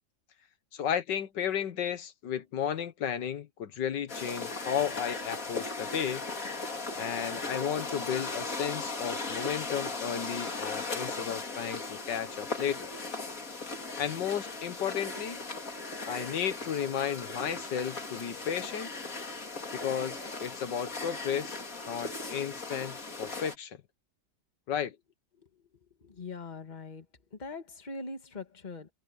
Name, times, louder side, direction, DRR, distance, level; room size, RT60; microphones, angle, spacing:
voice 1, 0.7-6.2 7.0-12.9 14.0-15.4 16.0-18.9 19.7-23.8 24.7-25.0, left 8 dB, 80° left, 1.8 m, -33 dB
sound 1, 4.1-23.6, left 3 dB, 50° left, 3.2 m, -38 dB
voice 2, 26.0-27.0 27.3-28.9, left 3 dB, 25° left, 1.7 m, -41 dB
omnidirectional pair, 1.9 m